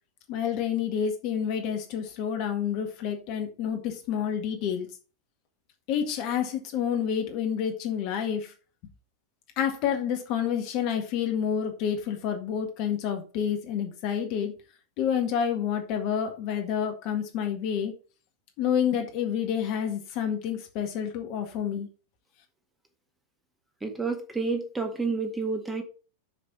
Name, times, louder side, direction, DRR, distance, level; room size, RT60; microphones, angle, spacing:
voice 1, 0.3-4.9 5.9-8.5 9.6-14.5 15.0-17.9 18.6-21.9, left 8 dB, 45° left, 5 dB, 1.8 m, -29 dB
voice 2, 23.8-25.8, right 4 dB, 10° right, 5 dB, 1.8 m, -29 dB
6.4 x 6.1 x 5.8 m, 0.35 s
figure-of-eight pair, 90°, 0 cm